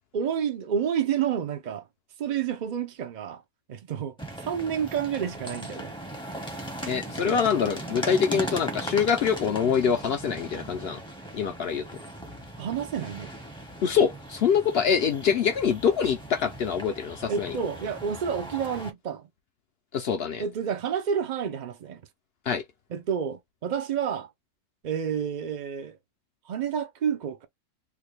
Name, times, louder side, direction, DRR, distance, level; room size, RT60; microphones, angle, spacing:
voice 1, 0.1-1.9 2.2-3.4 3.7-5.9 7.2-7.3 12.6-13.3 17.3-19.3 20.4-22.0 22.9-24.3 24.8-26.0 26.5-27.5, right 8 dB, 75° right, 0.4 m, -29 dB
sound 1, 4.2-18.9, right 1 dB, 5° left, 0.5 m, -38 dB
voice 2, 6.9-11.0 11.3-12.0 13.8-17.5 19.9-20.4 22.5-22.6, left 7 dB, 70° left, 0.5 m, -25 dB
3.4 x 2.2 x 3.3 m
omnidirectional pair, 1.6 m